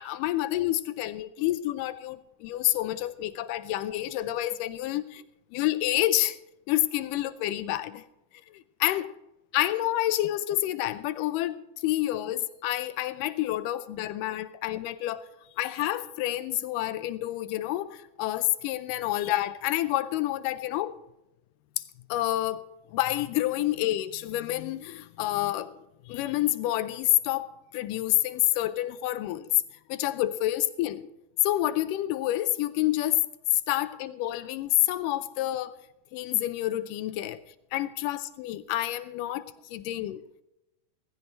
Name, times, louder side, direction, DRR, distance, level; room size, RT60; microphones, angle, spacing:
voice 1, 0.0-5.2 5.5-6.4 6.7-8.0 8.5-9.0 9.5-11.6 11.8-15.3 15.6-21.0 22.1-22.6 22.9-29.5 29.9-31.1 31.4-33.2 33.7-35.8 36.1-37.4 37.7-40.2, left 14 dB, 85° left, 2.2 m, -28 dB
17.0 x 15.5 x 3.3 m
omnidirectional pair, 3.8 m